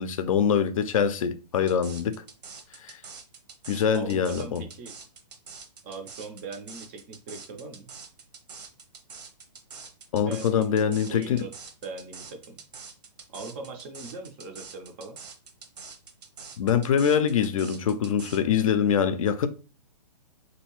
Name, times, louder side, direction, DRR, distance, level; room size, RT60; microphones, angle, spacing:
voice 1, 0.0-2.2 2.8-2.9 3.7-4.6 10.1-11.4 16.6-19.5, left 7 dB, 55° left, 0.4 m, -24 dB
sound 1, 1.7-18.4, right 5 dB, 70° right, 0.8 m, -45 dB
voice 2, 3.9-4.9 5.8-7.9 10.3-11.5 11.8-12.6 13.3-15.2, right 3 dB, 20° right, 0.4 m, -40 dB
3.1 x 2.6 x 3.0 m
hypercardioid pair, 155°, 21 cm